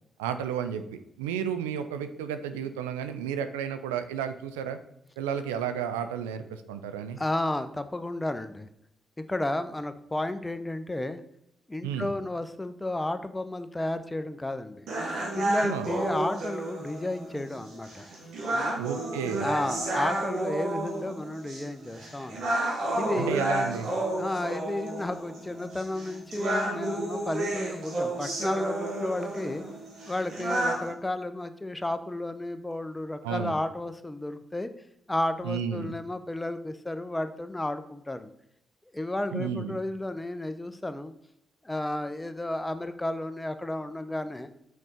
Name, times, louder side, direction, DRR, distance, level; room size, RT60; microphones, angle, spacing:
voice 1, 0.2-0.8 1.2-4.8 5.2-7.2 11.8-12.1 15.6-15.9 18.8-19.5 23.2-23.9 33.2-33.5 35.4-36.0 39.3-39.8, right 8 dB, 85° right, 9 dB, 0.4 m, -32 dB
voice 2, 7.2-8.7 9.3-11.2 11.7-14.9 15.4-18.1 18.5-18.8 19.4-22.4 23.0-23.4 24.1-29.6 30.1-34.7 35.1-38.3 38.9-41.1 41.6-44.5, left 1 dB, 15° left, 11 dB, 0.7 m, -32 dB
sound 1, 14.9-30.9, right 1 dB, 70° right, 2.1 m, -31 dB
6.3 x 5.1 x 4.3 m, 0.79 s
hypercardioid pair, 40°, 0 cm